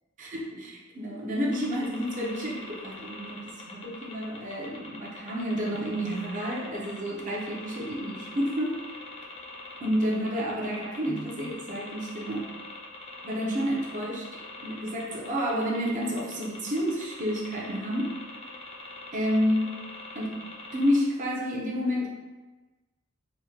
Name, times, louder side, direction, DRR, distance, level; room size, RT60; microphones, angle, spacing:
voice 1, 0.2-8.8 9.8-12.4 13.2-14.2 14.6-18.1 19.1-19.7 20.1-20.3 20.7-22.1, equal, 40° right, -4 dB, 0.6 m, -30 dB
sound 1, 1.5-21.0, left 2 dB, 30° left, 0.5 m, -44 dB
2.9 x 2.1 x 3.5 m, 1.2 s
head